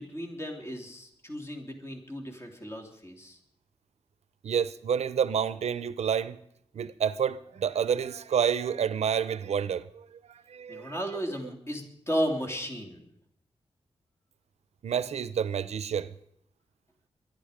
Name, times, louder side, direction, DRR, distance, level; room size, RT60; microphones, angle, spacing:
voice 1, 0.0-3.4 10.7-13.1, equal, 25° left, 3.0 m, -34 dB
voice 2, 4.4-6.4 6.7-10.9 14.8-16.1, right 8 dB, 90° right, 0.6 m, -29 dB
23.0 x 11.0 x 5.1 m
wide cardioid pair, 115°, 11 cm